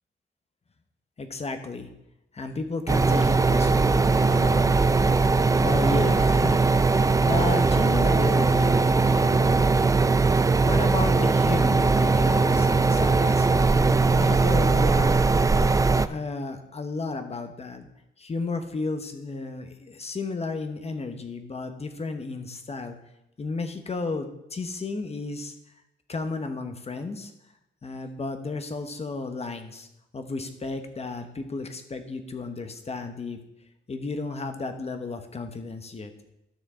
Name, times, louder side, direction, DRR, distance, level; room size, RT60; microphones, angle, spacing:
voice 1, 1.2-1.9 2.3-4.7 5.5-9.5 10.2-15.4 16.0-17.9 18.2-23.0 23.4-25.5 26.1-27.3 27.8-29.9 30.1-33.4 33.9-36.1, left 3 dB, 35° left, 7 dB, 1.1 m, -33 dB
sound 1, 2.9-16.1, right 4 dB, 15° right, 0.3 m, -20 dB
12.5 x 6.4 x 3.7 m, 0.87 s
cardioid pair, 100°, 20 cm